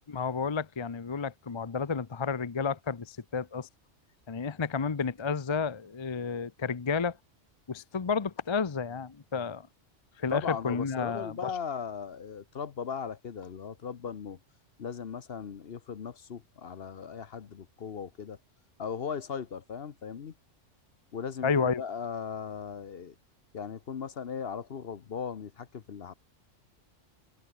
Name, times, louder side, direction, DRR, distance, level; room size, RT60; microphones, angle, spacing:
voice 1, 0.1-3.7 4.3-7.2 7.7-9.7 10.2-11.5 21.4-21.8, left 5 dB, 30° left, 0.7 m, -31 dB
voice 2, 10.3-14.4 14.8-18.4 18.8-20.3 21.1-23.1 23.5-26.1, left 6 dB, 55° left, 1.1 m, -38 dB
omnidirectional pair, 1.3 m